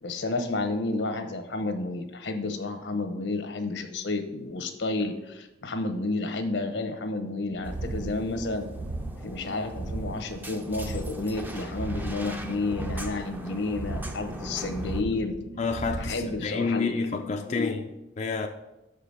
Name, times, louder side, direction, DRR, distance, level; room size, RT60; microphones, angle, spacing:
voice 1, 0.0-8.6 9.2-15.3 16.0-17.0 17.5-17.7, left 2 dB, 80° left, 1.0 m, -31 dB
sound 1, 7.5-16.5, right 2 dB, 55° right, 0.6 m, -37 dB
sound 2, 7.6-15.0, equal, 10° right, 0.6 m, -40 dB
voice 2, 15.6-17.8 18.2-18.5, left 4 dB, 40° left, 0.4 m, -29 dB
6.6 x 5.0 x 5.5 m
head